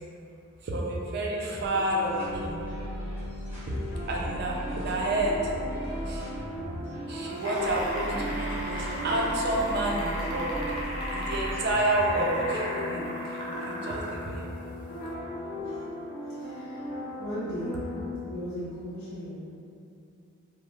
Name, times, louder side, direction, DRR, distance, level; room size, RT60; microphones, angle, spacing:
voice 1, 0.6-2.7 4.1-5.6 6.1-6.3 7.1-10.6 11.1-14.5, right 1 dB, 50° right, -2 dB, 0.4 m, -30 dB
sound 1, 1.4-18.0, left 1 dB, 50° left, 0.7 m, -38 dB
sound 2, 1.5-12.4, equal, 10° right, 0.7 m, -39 dB
sound 3, 7.3-14.2 15.1-15.2, equal, 25° left, 0.3 m, -36 dB
voice 2, 16.3-16.8 17.2-17.8 18.3-19.3, equal, 90° left, -11 dB, 0.5 m, -37 dB
2.4 x 2.0 x 3.1 m, 2.6 s
head